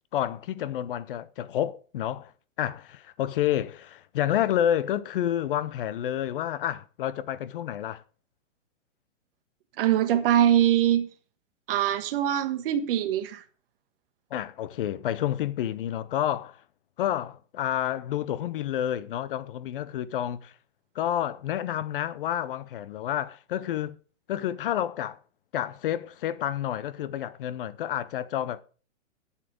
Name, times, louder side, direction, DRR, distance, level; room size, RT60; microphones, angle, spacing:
voice 1, 0.1-2.3 2.6-8.0 14.3-16.6 17.0-20.5 20.9-24.0 24.3-25.2 25.5-28.6, left 11 dB, 45° left, 0.7 m, -29 dB
voice 2, 9.8-11.1 11.7-13.4, right 11 dB, 45° right, 1.5 m, -23 dB
11.0 x 7.5 x 5.0 m
hypercardioid pair, 155°, 39 cm